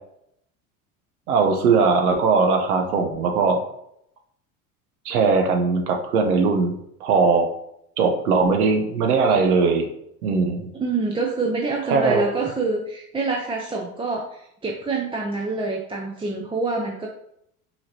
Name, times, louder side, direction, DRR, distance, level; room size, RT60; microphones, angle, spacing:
voice 1, 1.3-3.6 5.0-7.5 8.0-9.9 10.2-10.7 11.9-12.2, right 4 dB, 80° right, 5 dB, 0.9 m, -20 dB
voice 2, 10.7-17.1, right 3 dB, 10° right, -1 dB, 0.6 m, -26 dB
5.6 x 3.2 x 2.8 m, 0.75 s
hypercardioid pair, 75°, 44 cm